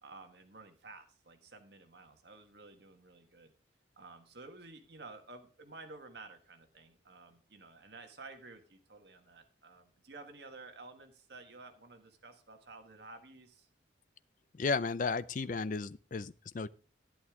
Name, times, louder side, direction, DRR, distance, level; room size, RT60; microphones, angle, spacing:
voice 1, 0.0-3.5 4.0-13.7, right 3 dB, 60° right, 1.6 m, -52 dB
voice 2, 14.5-16.7, left 4 dB, 45° left, 0.4 m, -34 dB
11.0 x 11.0 x 3.7 m
head